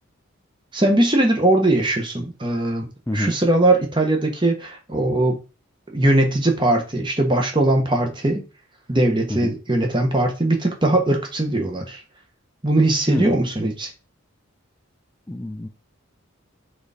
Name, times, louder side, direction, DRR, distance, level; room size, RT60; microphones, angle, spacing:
voice 1, 0.7-2.9 3.1-5.4 5.9-8.4 8.9-12.0 12.6-13.9, right 1 dB, 20° right, 1.3 m, -20 dB
voice 2, 15.3-15.7, left 1 dB, 10° left, 0.5 m, -26 dB
5.0 x 4.1 x 4.9 m
head